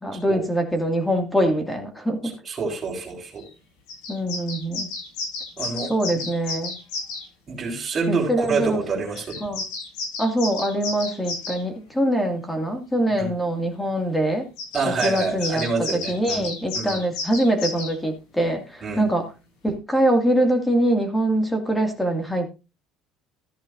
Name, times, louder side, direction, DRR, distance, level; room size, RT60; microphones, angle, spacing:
voice 1, 0.0-2.3 4.1-4.9 5.9-6.8 8.1-8.8 9.4-9.6 10.2-14.5 15.0-15.6 15.9-19.3 19.6-22.5, right 1 dB, 5° left, 5 dB, 2.3 m, -23 dB
voice 2, 2.4-3.5 5.6-5.9 7.5-9.4 13.2-13.3 14.7-16.4 16.7-17.0 18.8-19.0, right 4 dB, 25° right, -2 dB, 4.8 m, -27 dB
sound 1, 3.4-3.5 3.9-7.3 9.1-11.6 14.6-17.9, left 3 dB, 75° left, 7.8 m, -32 dB
14.0 x 10.5 x 2.7 m, 0.28 s
cardioid pair, 135°, 0 cm